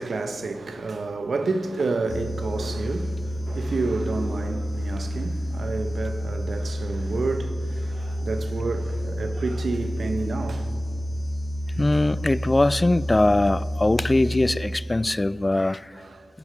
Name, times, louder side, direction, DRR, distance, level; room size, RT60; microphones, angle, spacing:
voice 1, 0.0-10.7 11.7-11.8 15.9-16.3, right 3 dB, 70° right, 1.1 m, -30 dB
sound 1, 2.1-15.2, equal, 75° left, 3.0 m, -29 dB
voice 2, 11.8-15.9, left 2 dB, 25° left, 0.4 m, -21 dB
20.5 x 7.1 x 9.1 m
cardioid pair, 50°, 0 cm